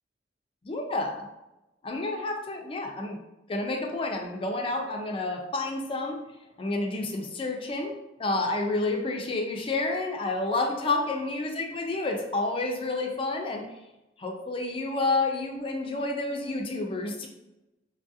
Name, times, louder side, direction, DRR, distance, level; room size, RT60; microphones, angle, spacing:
voice 1, 0.6-1.3 1.8-3.2 3.5-6.2 6.6-7.9 8.2-13.7 14.2-17.3, left 2 dB, 30° left, 2 dB, 0.4 m, -29 dB
4.6 x 2.4 x 2.6 m, 0.97 s
head